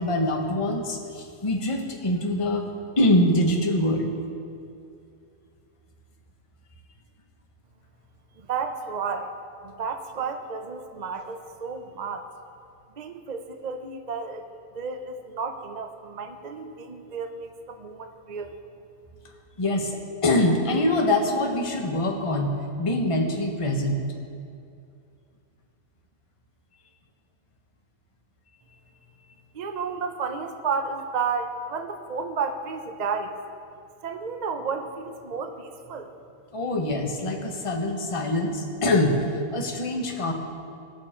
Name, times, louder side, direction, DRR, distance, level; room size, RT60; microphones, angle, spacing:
voice 1, 0.0-2.6 3.0-4.1 19.6-20.0 20.2-24.1 36.5-40.3, left 1 dB, 20° left, 1 dB, 1.1 m, -24 dB
voice 2, 8.4-9.3 9.6-12.3 13.0-14.4 14.7-18.6 29.5-33.4 34.0-36.1, right 5 dB, 50° right, 6 dB, 0.5 m, -32 dB
20.0 x 6.9 x 4.4 m, 2.5 s
omnidirectional pair, 1.7 m